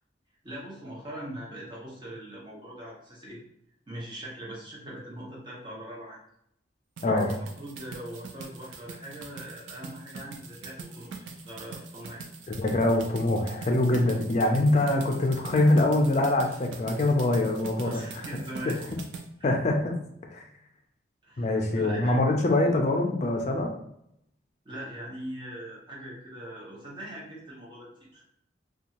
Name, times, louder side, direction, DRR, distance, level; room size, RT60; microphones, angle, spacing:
voice 1, 0.4-3.4 3.9-6.2 7.0-12.2 17.8-18.8 19.4-19.5 21.2-22.2 24.6-28.3, right 1 dB, 25° right, -5 dB, 0.6 m, -41 dB
sound 1, 7.0-19.3, right 4 dB, 80° right, 0.4 m, -43 dB
voice 2, 12.5-18.0 19.4-19.9 20.3-20.4 21.4-23.7, left 2 dB, 35° left, 2 dB, 0.4 m, -24 dB
2.6 x 2.3 x 2.9 m, 0.75 s
head